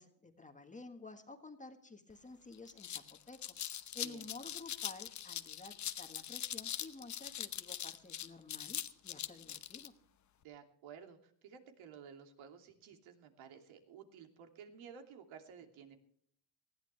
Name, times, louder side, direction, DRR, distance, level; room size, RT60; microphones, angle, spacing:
voice 1, 0.0-9.9, left 3 dB, 15° left, 6 dB, 1.6 m, -52 dB
sound 1, 2.1-2.2 2.5-9.9, left 10 dB, 35° left, 0.9 m, -42 dB
voice 2, 10.4-16.0, right 7 dB, 70° right, 5 dB, 2.9 m, -54 dB
20.0 x 15.0 x 3.4 m, 0.63 s
cardioid pair, 130°, 50 cm